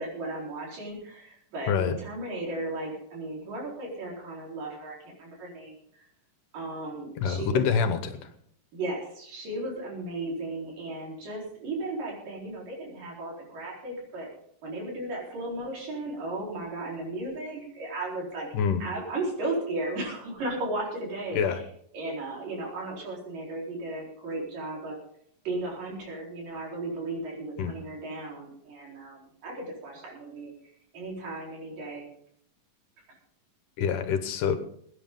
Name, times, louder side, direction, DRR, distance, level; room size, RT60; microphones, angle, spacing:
voice 1, 0.0-5.8 6.5-7.7 8.7-14.3 14.6-18.5 18.8-21.6 21.9-25.0 25.5-30.5 30.9-32.1, right 2 dB, 75° right, -2 dB, 6.0 m, -35 dB
voice 2, 1.7-2.0 7.2-8.3 18.5-18.8 21.3-21.6 27.6-27.7 33.8-34.6, left 6 dB, 75° left, 9 dB, 2.7 m, -26 dB
22.5 x 10.0 x 3.8 m, 0.65 s
omnidirectional pair, 3.9 m